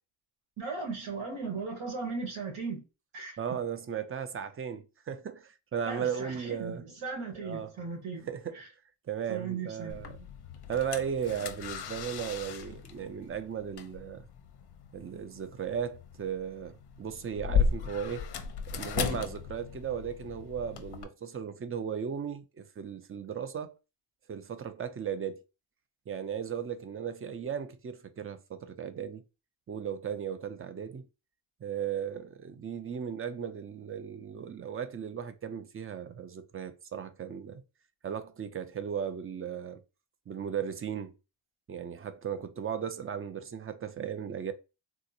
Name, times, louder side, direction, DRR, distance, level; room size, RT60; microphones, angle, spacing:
voice 1, 0.6-2.8 3.1-3.4 5.9-8.3 8.5-8.7 9.3-10.0, right 4 dB, 75° right, 1.7 m, -37 dB
voice 2, 3.4-6.8 7.4-7.7 8.3-8.6 9.1-10.1 10.7-14.3 14.9-18.3 18.7-23.7 24.3-25.4 26.1-29.2 29.7-31.0 31.6-37.6 38.0-39.8 40.3-41.1 41.7-44.5, right 8 dB, 30° right, 0.4 m, -36 dB
sound 1, 9.9-21.0, left 6 dB, 55° left, 0.6 m, -36 dB
3.7 x 2.5 x 2.7 m
cardioid pair, 110°, 50 cm